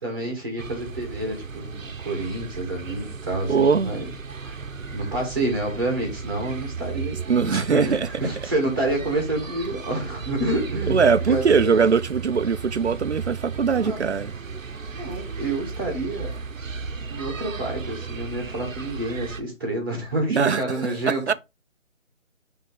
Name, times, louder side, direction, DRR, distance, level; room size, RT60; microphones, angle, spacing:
voice 1, 0.0-4.0 4.4-4.6 4.9-11.7 13.7-14.0 14.9-16.3 17.1-21.3, right 2 dB, 15° right, 1.8 m, -28 dB
sound 1, 0.6-19.4, right 5 dB, 75° right, 0.9 m, -35 dB
voice 2, 3.5-3.9 7.3-8.1 10.9-14.3 20.3-20.6 21.1-21.3, right 5 dB, 60° right, 0.6 m, -21 dB
7.3 x 3.7 x 3.9 m
figure-of-eight pair, 180°, 39 cm